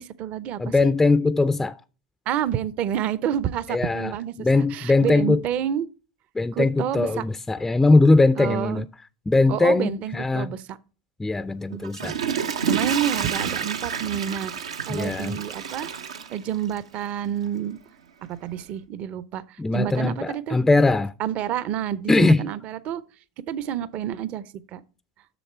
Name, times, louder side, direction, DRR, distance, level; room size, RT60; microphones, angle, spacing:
voice 1, 0.0-0.9 2.3-5.9 6.5-7.2 8.4-8.8 9.5-10.8 12.6-17.8 18.3-20.6 21.2-23.0 23.5-24.8, right 10 dB, 45° right, 0.6 m, -29 dB
voice 2, 0.6-1.8 3.7-4.1 4.4-5.4 6.3-8.9 9.3-10.5 11.2-12.1 14.9-15.4 19.6-21.1 22.1-22.4, left 3 dB, 10° left, 0.3 m, -20 dB
Water / Toilet flush, 11.7-17.0 17.5-17.6, right 7 dB, 85° right, 0.7 m, -29 dB
7.0 x 6.6 x 4.3 m
hypercardioid pair, 95°, 3 cm